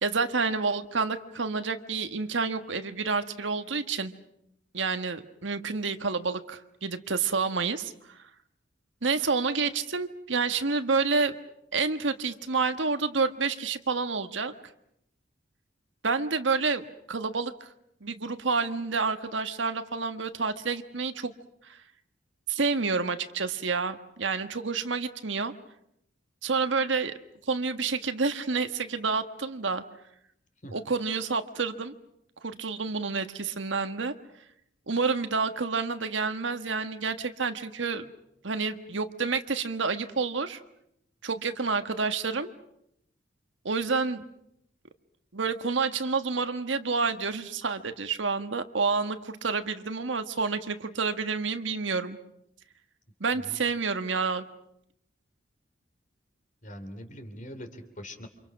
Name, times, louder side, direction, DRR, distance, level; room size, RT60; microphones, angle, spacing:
voice 1, 0.0-4.1 4.7-8.2 9.0-11.3 11.7-14.5 16.0-17.7 18.0-21.3 21.6-21.8 22.5-25.5 26.4-27.1 27.5-29.8 30.7-31.9 32.4-34.1 34.9-38.1 38.4-40.6 41.2-42.5 43.6-44.2 45.3-52.2 53.2-54.5, right 4 dB, 85° right, 8 dB, 1.5 m, -29 dB
voice 2, 56.6-58.3, equal, 45° left, 8 dB, 3.0 m, -42 dB
28.5 x 26.5 x 6.0 m, 0.74 s
head